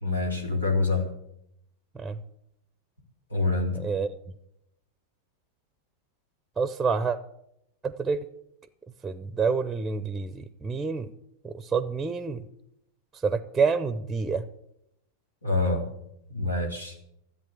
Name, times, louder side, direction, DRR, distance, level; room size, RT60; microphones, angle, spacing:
voice 1, 0.0-1.0 3.3-3.7 15.4-15.8 16.3-16.9, left 3 dB, 80° left, 2 dB, 2.9 m, -26 dB
voice 2, 3.7-4.1 6.6-7.2 7.8-8.2 9.0-11.1 11.4-12.4 13.1-14.5, right 5 dB, 10° right, 14 dB, 0.7 m, -28 dB
14.0 x 8.2 x 8.3 m, 0.80 s
figure-of-eight pair, 90°, 0 cm